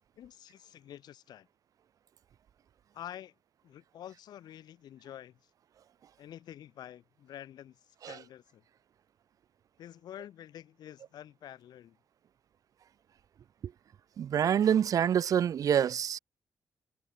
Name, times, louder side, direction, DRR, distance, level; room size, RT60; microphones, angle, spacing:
voice 1, 0.2-1.5 2.9-3.3 3.6-5.5 6.2-8.6 9.8-12.0, left 11 dB, 85° left, 5.5 m, -48 dB
voice 2, 14.2-16.2, right 9 dB, 60° right, 0.4 m, -26 dB
cardioid pair, 105°, 7 cm